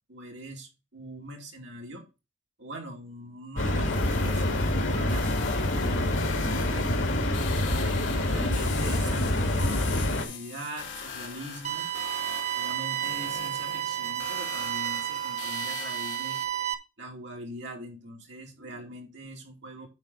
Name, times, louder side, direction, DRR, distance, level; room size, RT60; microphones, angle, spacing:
voice 1, 0.1-2.1 2.6-4.4 4.8-7.1 7.8-11.9 12.5-16.4 17.0-19.9, right 1 dB, 65° right, 1 dB, 2.6 m, -42 dB
sound 1, 3.6-10.2, left 1 dB, 85° left, 1.8 m, -26 dB
sound 2, 3.9-16.4, left 6 dB, 70° left, 2.8 m, -41 dB
sound 3, 11.6-16.7, right 12 dB, 35° right, 0.8 m, -31 dB
9.1 x 3.9 x 5.5 m, 0.27 s
head